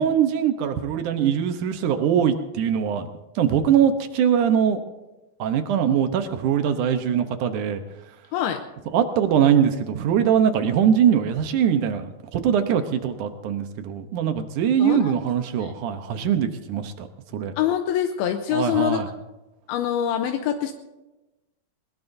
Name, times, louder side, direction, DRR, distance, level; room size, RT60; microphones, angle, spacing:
voice 1, 0.0-3.1 3.4-4.8 5.4-7.8 8.9-17.1 17.3-17.5 18.5-19.1, right 8 dB, 70° right, 8 dB, 2.1 m, -22 dB
voice 2, 14.8-15.1 15.6-15.7 17.6-19.0 19.7-20.7, left 10 dB, 85° left, 5 dB, 2.7 m, -24 dB
21.0 x 20.5 x 2.7 m, 1.1 s
omnidirectional pair, 4.4 m